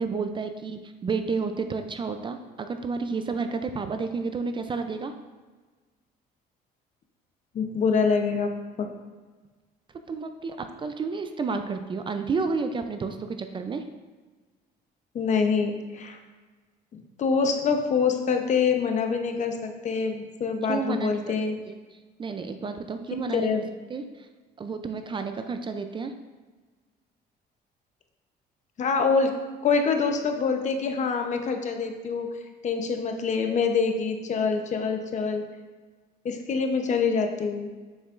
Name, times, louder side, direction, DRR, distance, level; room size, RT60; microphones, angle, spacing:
voice 1, 0.0-5.1 10.1-13.8 20.7-21.3 21.7-21.8 22.2-23.5 23.9-24.3 24.6-26.1, right 4 dB, 30° right, 7 dB, 0.4 m, -31 dB
voice 2, 7.5-8.5 8.8-8.9 15.1-16.2 16.9-21.6 23.3-23.6 28.8-29.4 29.6-32.4 32.6-35.5 36.2-37.7, left 5 dB, 45° left, 5 dB, 0.8 m, -25 dB
7.1 x 5.6 x 2.5 m, 1.3 s
cardioid pair, 110°, 17 cm